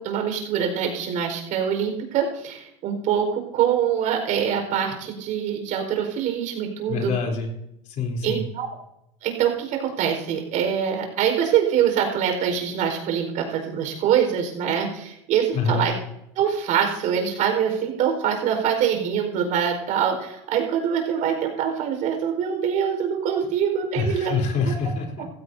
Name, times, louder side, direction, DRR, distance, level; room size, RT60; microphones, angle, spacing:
voice 1, 0.0-7.1 8.2-8.7 9.2-15.9 16.3-24.4 25.2-25.3, right 8 dB, 60° right, 3 dB, 4.8 m, -24 dB
voice 2, 6.9-7.5 8.0-8.4 15.5-15.9 23.9-25.2, left 4 dB, 55° left, 1 dB, 3.7 m, -25 dB
16.0 x 15.5 x 2.8 m, 0.81 s
supercardioid pair, 110°, 15 cm